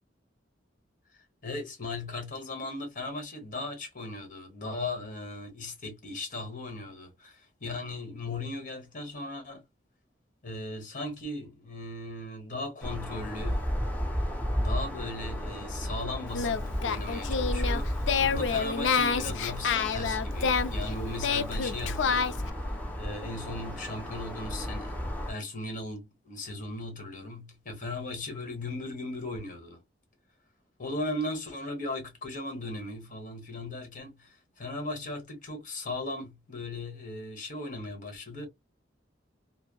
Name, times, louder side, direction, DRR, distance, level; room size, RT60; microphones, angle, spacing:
voice 1, 1.4-9.6 10.4-13.6 14.5-22.6 23.0-25.0 25.3-29.8 30.8-38.5, left 2 dB, 45° left, 1.3 m, -37 dB
sound 1, 12.8-25.3, equal, 10° left, 0.9 m, -34 dB
Singing, 16.3-22.5, left 5 dB, 75° left, 0.4 m, -29 dB
3.3 x 2.0 x 2.3 m
head